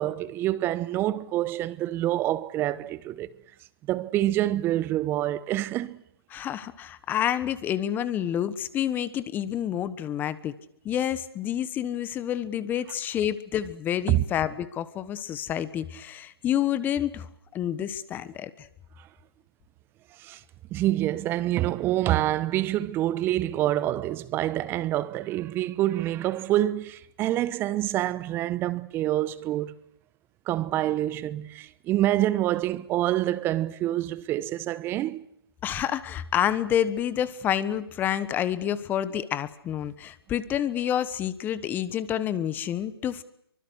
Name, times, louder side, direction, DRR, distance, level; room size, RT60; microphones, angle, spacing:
voice 1, 0.0-3.3 3.8-6.0 14.1-14.2 20.2-20.4 20.7-29.8 30.5-35.2, right 14 dB, 15° right, 1.0 m, -26 dB
voice 2, 6.3-10.5 10.8-18.7 35.6-43.2, left 10 dB, 15° left, 1.2 m, -28 dB
25.0 x 24.5 x 8.1 m
figure-of-eight pair, 145°, 13 cm